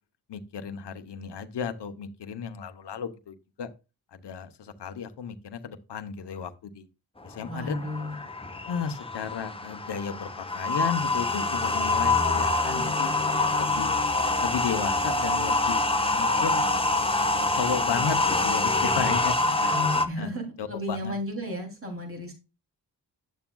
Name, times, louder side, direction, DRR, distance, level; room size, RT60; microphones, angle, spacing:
voice 1, 0.3-3.7 4.1-6.9 7.2-7.8 8.7-13.9 14.4-16.6 17.3-19.9 20.2-20.3 20.6-21.1, left 7 dB, 75° left, 9 dB, 1.0 m, -34 dB
sound 1, 7.2-20.1, left 2 dB, 15° left, 0.9 m, -26 dB
voice 2, 7.4-8.2 19.4-22.3, left 1 dB, 30° right, 1 dB, 2.9 m, -34 dB
10.5 x 7.1 x 2.3 m, 0.28 s
cardioid pair, 60°, 41 cm